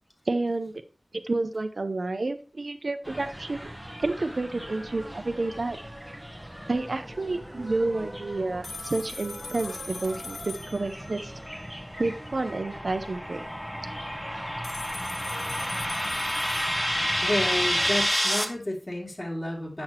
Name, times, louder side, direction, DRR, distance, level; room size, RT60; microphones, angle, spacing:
voice 1, 0.3-0.7 1.2-3.7 4.0-5.8 6.7-11.3 12.0-13.5, right 2 dB, 75° right, 9 dB, 0.6 m, -30 dB
sound 1, 3.0-18.1, equal, ahead, 1.0 m, -41 dB
sound 2, 8.6-12.0 14.6-18.0, left 3 dB, 75° left, 0.7 m, -42 dB
sound 3, 11.6-18.4, equal, 20° left, 1.3 m, -29 dB
voice 2, 17.2-19.8, left 1 dB, 40° left, -1 dB, 2.4 m, -31 dB
7.8 x 5.8 x 2.9 m, 0.36 s
wide cardioid pair, 50°, 0 cm